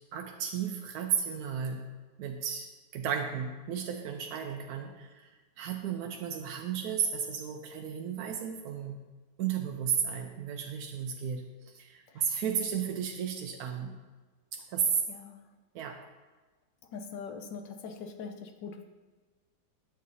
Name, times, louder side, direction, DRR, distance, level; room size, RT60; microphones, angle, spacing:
voice 1, 0.1-1.9 2.2-9.0 9.4-14.0 14.5-15.0 15.7-16.0, right 7 dB, 70° right, 3 dB, 0.9 m, -34 dB
voice 2, 15.1-15.5 16.9-18.8, left 5 dB, 75° left, 5 dB, 1.4 m, -42 dB
10.0 x 7.5 x 2.7 m, 1.3 s
omnidirectional pair, 2.0 m